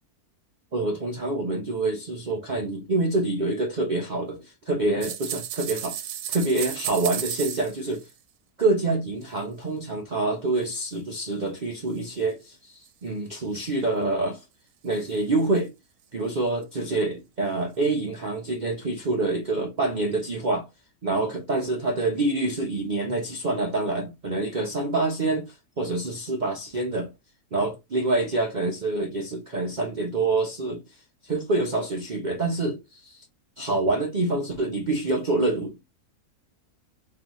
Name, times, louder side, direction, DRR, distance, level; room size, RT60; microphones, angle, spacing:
voice 1, 0.7-6.0 6.3-8.1 8.6-14.4 14.8-15.7 16.1-20.7 21.0-27.1 27.5-33.3 33.6-35.8, right 2 dB, 50° right, 0.5 m, -26 dB
sound 1, 5.0-8.1 9.2-9.3 10.6-10.9 11.3-11.4 12.0-12.1 12.8-12.9 14.9-15.2 15.5-15.6 16.6-16.7, right 10 dB, 80° right, 1.1 m, -33 dB
3.9 x 3.1 x 3.0 m
omnidirectional pair, 1.7 m